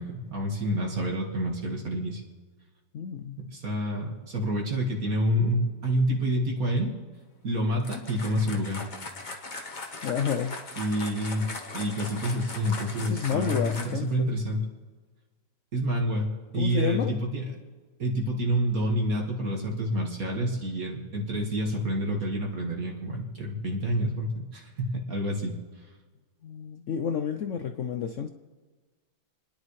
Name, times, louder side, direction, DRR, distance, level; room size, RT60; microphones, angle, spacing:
voice 1, 0.0-2.2 3.4-6.9 7.4-8.8 10.8-11.5 11.7-14.6 15.7-16.3 16.5-17.5 18.0-25.5, equal, 50° right, 0 dB, 2.1 m, -28 dB
voice 2, 2.9-3.4 10.0-10.6 13.0-14.3 16.5-17.1 26.4-28.3, left 7 dB, 85° left, 7 dB, 0.6 m, -30 dB
sound 1, 7.8-14.1, left 3 dB, 30° left, 1.0 m, -39 dB
29.5 x 10.5 x 3.2 m, 1.4 s
omnidirectional pair, 2.0 m